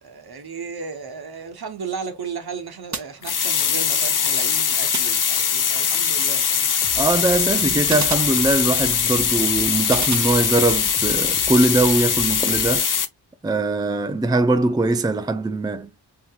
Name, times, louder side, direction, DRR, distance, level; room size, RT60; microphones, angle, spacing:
voice 1, 0.0-6.7, right 5 dB, 65° right, 1.1 m, -34 dB
sound 1, 2.9-3.8 4.9-5.8 7.9-9.0 9.9-11.0, right 5 dB, 45° right, 0.8 m, -34 dB
sound 2, 3.2-13.1, left 7 dB, 50° left, 0.6 m, -21 dB
sound 3, 6.8-12.8, equal, 30° left, 1.4 m, -39 dB
voice 2, 7.0-12.9 13.4-15.9, right 2 dB, 10° right, 0.5 m, -21 dB
5.5 x 2.8 x 2.4 m
cardioid pair, 45°, 41 cm